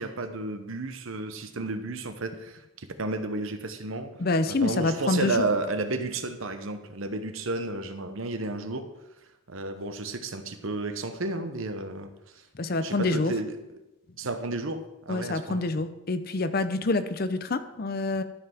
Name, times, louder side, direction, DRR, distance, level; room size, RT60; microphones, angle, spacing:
voice 1, 0.0-4.2 4.5-8.9 9.5-12.5 12.8-13.8 14.2-15.7, right 2 dB, 70° right, 9 dB, 0.9 m, -32 dB
voice 2, 4.2-5.5 12.5-13.3 15.1-18.2, left 2 dB, 45° left, 11 dB, 0.6 m, -27 dB
12.5 x 5.5 x 5.9 m, 0.95 s
head